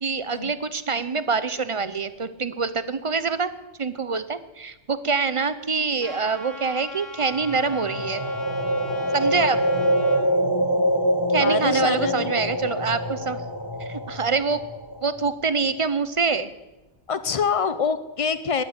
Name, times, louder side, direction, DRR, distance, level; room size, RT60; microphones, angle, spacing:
voice 1, 0.0-3.5 3.8-8.2 9.1-9.6 11.3-13.4 13.8-14.6 15.0-16.5, right 4 dB, 35° right, 13 dB, 0.6 m, -25 dB
Trumpet, 6.0-10.2, left 2 dB, 85° left, 3.1 m, -39 dB
sound 1, 7.3-15.3, right 1 dB, 15° left, 1.9 m, -25 dB
voice 2, 11.4-12.3 17.1-18.6, left 6 dB, 30° left, 13 dB, 0.7 m, -26 dB
12.5 x 9.6 x 9.5 m, 1.0 s
omnidirectional pair, 1.3 m